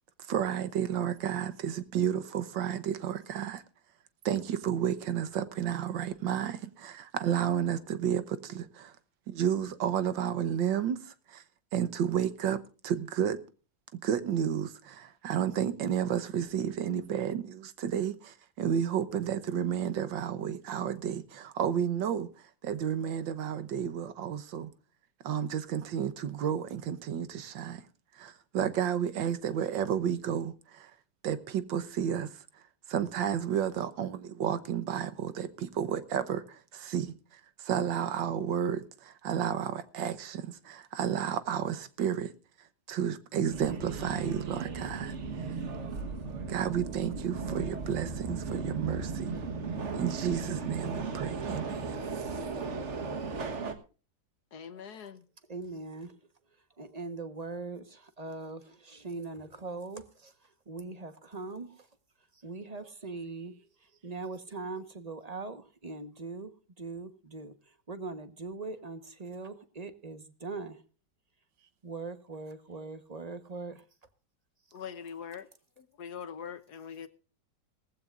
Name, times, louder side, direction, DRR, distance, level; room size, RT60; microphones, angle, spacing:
voice 1, 0.3-3.6 4.2-8.9 9.3-11.4 11.7-13.4 14.0-22.3 22.6-24.7 25.2-27.8 28.2-30.9 31.2-32.4 32.9-37.1 37.6-42.3 42.9-45.1 46.5-49.3 49.9-52.5, right 9 dB, 90° right, 1.8 m, -31 dB
Subway metro underground, 43.5-53.7, right 4 dB, 45° right, 1.5 m, -36 dB
voice 2, 54.5-55.2 74.7-75.5 75.8-77.1, left 7 dB, 65° left, 1.4 m, -43 dB
voice 3, 55.5-56.1 56.8-60.3 60.7-61.9 62.4-63.5 64.0-66.5 66.8-67.5 67.9-70.8 71.8-73.8, right 3 dB, 25° right, 1.0 m, -41 dB
18.5 x 15.5 x 2.5 m
omnidirectional pair, 2.0 m